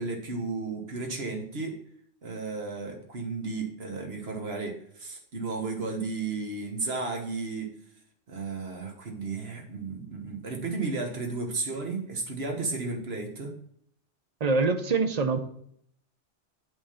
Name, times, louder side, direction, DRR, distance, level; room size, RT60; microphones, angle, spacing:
voice 1, 0.0-1.8 2.2-7.7 8.3-13.5, right 3 dB, 60° right, 3 dB, 1.6 m, -33 dB
voice 2, 14.4-15.4, right 4 dB, 40° right, 7 dB, 0.7 m, -24 dB
8.0 x 3.8 x 5.6 m, 0.68 s
omnidirectional pair, 1.2 m